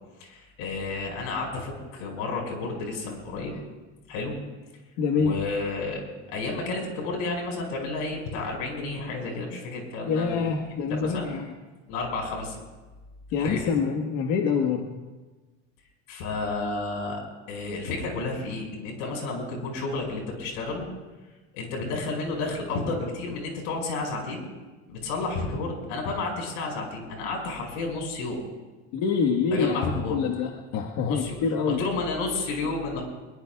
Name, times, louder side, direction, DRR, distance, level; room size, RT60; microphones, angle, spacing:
voice 1, 0.2-3.6 4.1-4.4 5.2-6.0 6.3-10.6 10.9-11.3 11.9-12.6 13.4-13.7 16.1-17.2 17.5-20.9 21.5-24.5 24.9-28.4 29.5-30.2 31.1-31.4 31.7-33.0, left 3 dB, 90° left, 1 dB, 5.4 m, -31 dB
voice 2, 5.0-5.4 10.1-11.4 13.3-14.9 28.9-31.8, left 5 dB, 60° left, 1 dB, 1.5 m, -26 dB
23.0 x 22.0 x 2.4 m, 1.2 s
cardioid pair, 145°, 34 cm